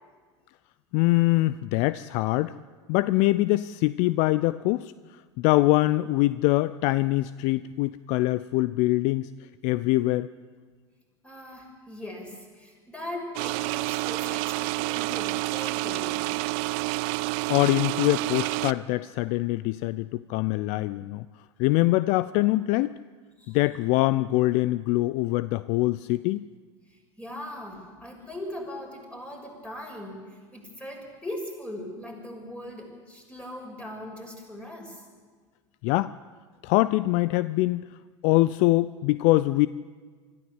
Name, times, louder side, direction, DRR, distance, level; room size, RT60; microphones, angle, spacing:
voice 1, 0.9-2.6 2.9-4.9 5.4-9.3 9.6-10.3 17.5-21.3 21.6-23.0 23.5-26.5 35.8-36.1 36.6-37.8 38.2-39.7, left 18 dB, 50° left, 17 dB, 0.5 m, -23 dB
voice 2, 11.2-16.3 23.4-23.6 27.2-30.2 30.5-35.0, left 1 dB, 10° left, 1 dB, 6.4 m, -39 dB
sound 1, 13.4-18.7, right 20 dB, 55° right, 0.7 m, -29 dB
25.0 x 14.0 x 8.1 m, 1.5 s
figure-of-eight pair, 80°, 15 cm